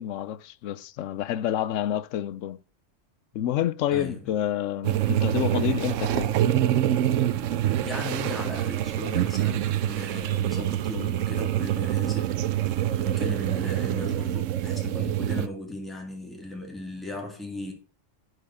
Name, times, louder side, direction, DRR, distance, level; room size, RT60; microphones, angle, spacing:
voice 1, 0.0-2.6 3.3-6.3, left 11 dB, 80° left, 0.9 m, -28 dB
voice 2, 3.9-4.3 7.8-17.7, left 2 dB, ahead, 2.2 m, -37 dB
sound 1, 4.8-15.5, right 12 dB, 80° right, 1.0 m, -26 dB
9.8 x 4.8 x 5.7 m
omnidirectional pair, 1.3 m